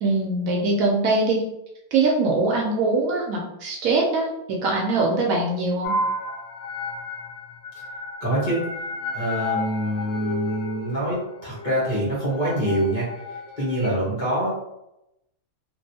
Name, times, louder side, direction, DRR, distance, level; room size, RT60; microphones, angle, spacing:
voice 1, 0.0-1.4 1.9-6.0, right 3 dB, 70° right, -1 dB, 1.0 m, -22 dB
sound 1, 5.8-13.9, left 2 dB, 65° left, 0.7 m, -32 dB
voice 2, 8.2-8.6 9.1-13.1 13.6-14.5, right 1 dB, 35° left, -8 dB, 1.1 m, -25 dB
3.2 x 2.6 x 2.7 m, 0.86 s
omnidirectional pair, 1.6 m